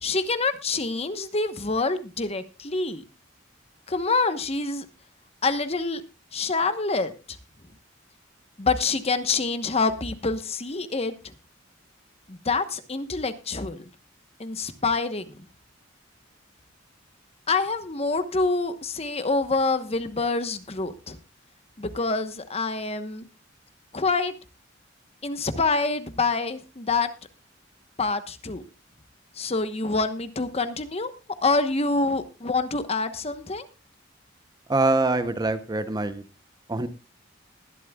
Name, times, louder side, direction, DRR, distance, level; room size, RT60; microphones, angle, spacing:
voice 1, 0.0-3.0 3.9-4.9 5.4-6.0 6.3-7.1 8.6-11.1 12.3-13.8 14.4-15.4 17.5-21.2 21.8-23.3 23.9-24.3 25.2-27.1 28.0-28.6 29.3-31.1 31.4-33.6, left 3 dB, 30° left, 10 dB, 1.1 m, -26 dB
voice 2, 34.7-36.2 36.7-36.9, right 2 dB, 20° right, 11 dB, 0.7 m, -24 dB
20.5 x 11.5 x 2.3 m, 0.29 s
head